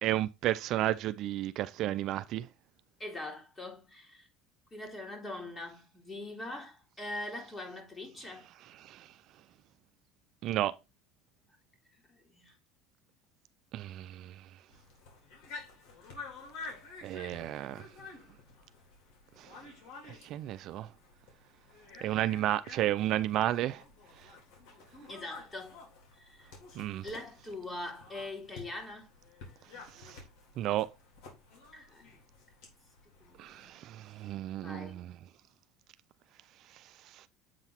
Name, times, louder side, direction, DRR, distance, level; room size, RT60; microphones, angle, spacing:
voice 1, 0.0-2.5 8.7-9.1 10.4-10.8 13.7-14.5 17.0-17.9 19.4-19.6 20.0-20.9 22.0-23.8 24.2-24.3 26.8-27.1 29.9-30.2 30.6-30.9 33.4-35.1 36.7-37.3, right 13 dB, 55° right, 0.4 m, -33 dB
voice 2, 3.0-4.3 4.7-8.5 12.1-12.6 22.1-22.2 25.1-25.8 26.1-26.5 27.0-29.1 31.7-32.1 33.2-33.8 34.1-34.3 34.6-35.0, left 2 dB, 20° left, 2.5 m, -43 dB
sound 1, 14.7-33.7, left 4 dB, 70° left, 3.7 m, -51 dB
8.0 x 3.9 x 4.3 m
supercardioid pair, 105°, 0 cm